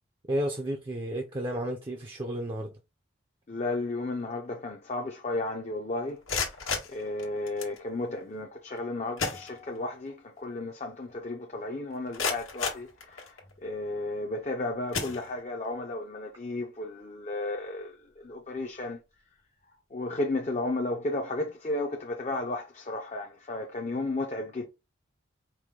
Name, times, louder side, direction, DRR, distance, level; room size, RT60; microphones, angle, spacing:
voice 1, 0.3-2.7, right 1 dB, 25° right, 0.5 m, -32 dB
voice 2, 3.5-6.2 6.9-13.4 13.6-18.0 18.2-19.0 19.9-24.6, left 2 dB, 35° left, 0.5 m, -33 dB
X-Shot Chaos Meteor Reload & Shot, 6.1-7.8 8.8-8.9 9.2-10.1 10.4-10.5 11.1-11.2 11.7-13.6 14.2-14.5 14.9-15.7, left 5 dB, 85° left, 1.3 m, -34 dB
4.7 x 2.2 x 3.6 m
head